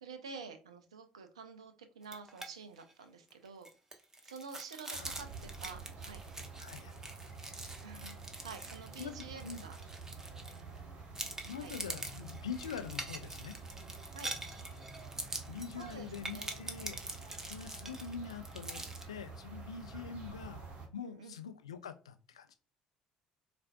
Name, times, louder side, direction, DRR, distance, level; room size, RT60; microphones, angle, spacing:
voice 1, 0.0-3.7 4.2-6.2 7.8-8.2 8.4-9.7 11.6-11.8 14.1-14.3 15.8-16.6 21.0-21.4, right 5 dB, 90° right, 0.4 m, -49 dB
sound 1, 2.0-2.5 2.8-2.9 3.3-10.8 11.1-19.0, right 2 dB, 15° right, 0.8 m, -45 dB
sound 2, 4.9-20.9, right 4 dB, 50° right, 1.1 m, -49 dB
voice 2, 6.6-6.9 9.0-9.6 11.4-13.6 15.5-20.6 20.9-22.6, left 6 dB, 90° left, 0.3 m, -44 dB
4.3 x 2.4 x 2.2 m
hypercardioid pair, 60°, 3 cm